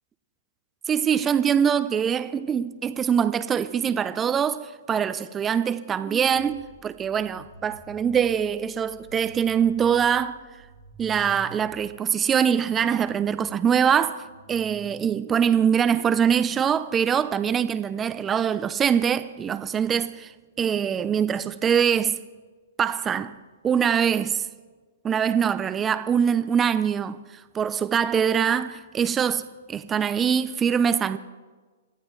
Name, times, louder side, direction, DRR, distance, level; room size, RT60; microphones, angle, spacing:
voice 1, 0.9-10.4 11.0-20.3 20.6-22.2 22.8-23.4 23.6-24.5 25.0-31.2, right 8 dB, 15° right, 0.6 m, -23 dB
sound 1, 6.3-16.6, right 5 dB, 40° right, 1.5 m, -49 dB
27.0 x 14.0 x 3.3 m
hypercardioid pair, 140°, 0 cm